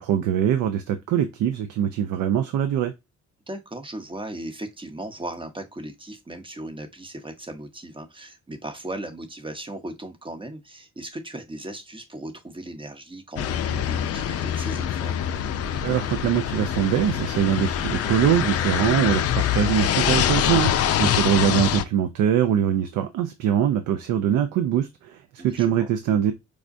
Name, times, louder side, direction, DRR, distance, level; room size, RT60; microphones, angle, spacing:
voice 1, 0.0-2.9 15.8-26.3, right 9 dB, 80° right, 0.5 m, -23 dB
voice 2, 3.5-15.1 25.4-25.9, right 1 dB, 15° right, 0.8 m, -37 dB
sound 1, 13.4-21.8, left 10 dB, 55° left, 0.4 m, -24 dB
4.8 x 2.1 x 2.5 m
cardioid pair, 90°, 30 cm